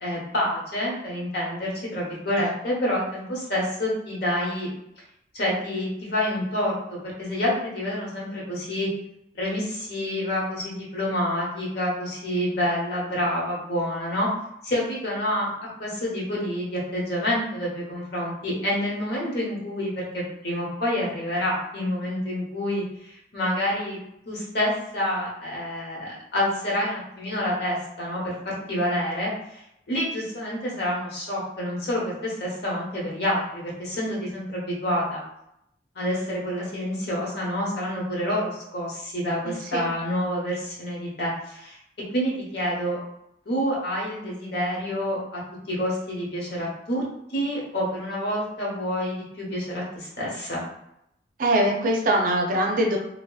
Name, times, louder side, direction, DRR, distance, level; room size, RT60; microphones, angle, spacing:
voice 1, 0.0-4.7 5.3-8.9 9.3-14.3 14.6-15.5 15.8-22.8 23.3-24.0 24.3-29.6 29.9-35.2 35.9-41.8 42.1-43.0 43.4-45.4 45.7-47.0 47.3-50.7, equal, 60° left, -4 dB, 1.0 m, -28 dB
voice 2, 39.4-39.9 51.4-53.0, right 1 dB, 50° right, 0 dB, 0.5 m, -23 dB
2.8 x 2.6 x 2.3 m, 0.80 s
head